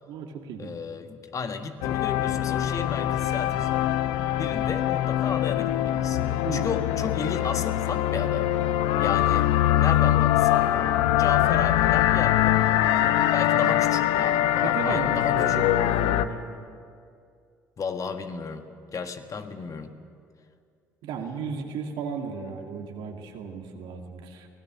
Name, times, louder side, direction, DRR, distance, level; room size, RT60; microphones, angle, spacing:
voice 1, 0.1-0.8 6.4-6.7 13.6-13.8 14.6-16.4 21.0-24.5, right 5 dB, 65° right, 3 dB, 2.3 m, -35 dB
voice 2, 0.6-3.9 4.4-8.5 9.0-15.7 17.8-18.6 18.9-19.9, left 5 dB, 40° left, 7 dB, 1.6 m, -34 dB
sound 1, 1.8-16.3, left 13 dB, 70° left, 0.7 m, -23 dB
24.0 x 17.5 x 6.5 m, 2.3 s
hypercardioid pair, 55°, 9 cm